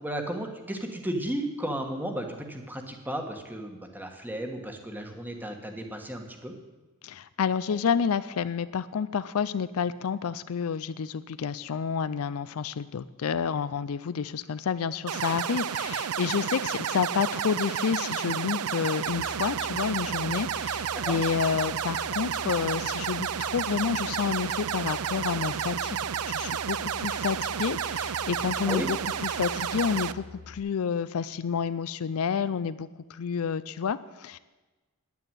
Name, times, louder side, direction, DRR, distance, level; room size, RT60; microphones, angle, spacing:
voice 1, 0.0-6.5 21.0-21.2 28.6-28.9, right 1 dB, 10° right, 4 dB, 1.4 m, -34 dB
voice 2, 7.0-26.0 26.3-29.0 29.2-34.4, left 6 dB, 70° left, 15 dB, 0.4 m, -29 dB
sound 1, 15.1-30.1, right 8 dB, 75° right, 0.5 m, -31 dB
Boat Water vehicle, 19.1-30.6, left 4 dB, 40° left, 1.7 m, -46 dB
9.8 x 9.4 x 8.9 m, 1.2 s
head